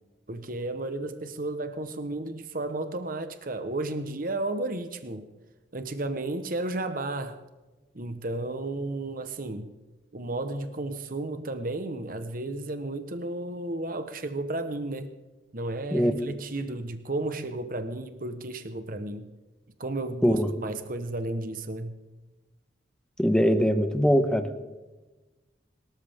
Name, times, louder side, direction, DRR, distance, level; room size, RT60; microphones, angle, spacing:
voice 1, 0.3-5.3 5.7-7.4 7.9-9.7 10.1-15.1 15.5-19.3 19.8-21.9, right 2 dB, 50° right, 9 dB, 1.2 m, -33 dB
voice 2, 23.2-24.5, equal, 5° left, 8 dB, 1.1 m, -22 dB
25.5 x 13.5 x 3.7 m, 1.2 s
head